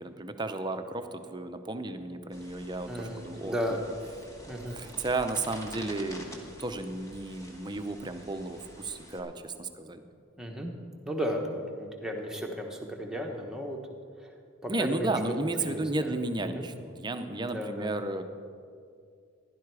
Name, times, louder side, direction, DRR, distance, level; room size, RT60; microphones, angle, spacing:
voice 1, 0.0-3.5 4.7-10.0 14.7-18.2, right 2 dB, 20° right, 7 dB, 0.6 m, -33 dB
sound 1, 2.3-9.2, equal, 15° left, 1.4 m, -48 dB
voice 2, 2.9-3.8 4.5-4.8 10.4-10.7 11.0-13.8 14.2-14.3 14.6-15.1 15.4-16.1 16.5-16.7 17.5-17.9, equal, 5° right, 0 dB, 1.2 m, -34 dB
15.5 x 11.5 x 4.8 m, 2.3 s
head